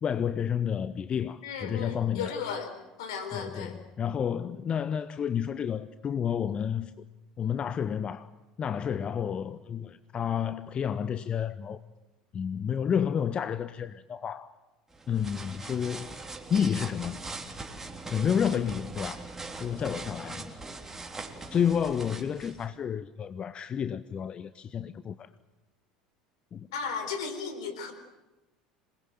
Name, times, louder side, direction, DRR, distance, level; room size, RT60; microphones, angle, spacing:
voice 1, 0.0-2.3 3.3-6.9 7.4-8.3 8.6-11.8 12.3-14.5 15.1-16.1 16.5-17.2 18.1-19.2 19.6-20.6 21.5-25.3 26.5-26.7, left 8 dB, 30° left, 0.8 m, -30 dB
voice 2, 1.4-3.8 26.7-27.9, left 6 dB, 65° left, 4.1 m, -35 dB
sound 1, 14.9-22.7, right 3 dB, 10° right, 3.4 m, -41 dB
27.0 x 20.5 x 7.9 m
figure-of-eight pair, 70°, 3 cm